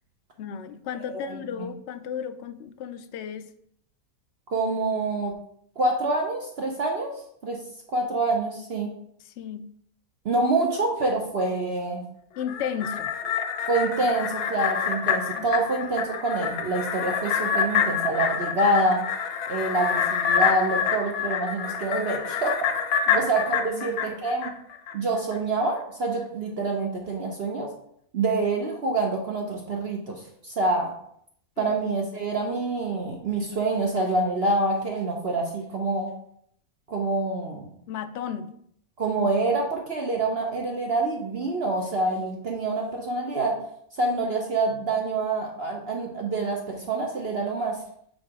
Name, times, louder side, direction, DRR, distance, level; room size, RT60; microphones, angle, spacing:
voice 1, 0.4-3.5 9.2-9.6 12.4-13.1 15.4-15.5 23.1-24.0 31.6-31.7 37.9-38.5, left 8 dB, 70° left, 8 dB, 0.6 m, -34 dB
voice 2, 1.1-1.4 4.5-5.3 5.8-7.1 7.4-7.6 7.9-8.9 10.2-12.0 13.7-19.0 19.5-22.7 23.1-24.5 24.9-27.7 28.1-30.9 31.6-36.1 36.9-37.7 39.0-43.6 44.0-47.8, right 2 dB, 50° right, 1 dB, 0.8 m, -26 dB
sound 1, 12.4-24.9 25.3-25.4, left 7 dB, 90° left, 1.2 m, -27 dB
5.2 x 4.0 x 4.7 m, 0.68 s
omnidirectional pair, 1.6 m